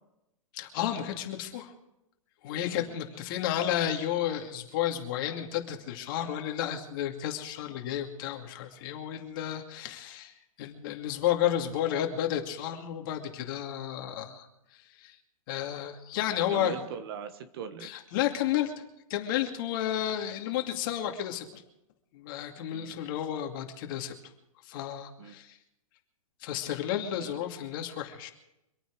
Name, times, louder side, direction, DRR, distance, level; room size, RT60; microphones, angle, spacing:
voice 1, 0.5-1.7 2.4-10.3 10.6-14.5 15.0-15.2 15.5-16.7 17.8-18.7 19.1-21.6 22.1-24.1 24.7-25.6 26.4-28.3, left 11 dB, 40° left, 4 dB, 2.5 m, -32 dB
voice 2, 2.7-3.0 16.2-17.9 22.7-22.9 25.2-25.4 27.1-27.4, right 7 dB, 45° right, 10 dB, 1.4 m, -41 dB
25.5 x 9.2 x 4.9 m, 0.86 s
hypercardioid pair, 165°, 18 cm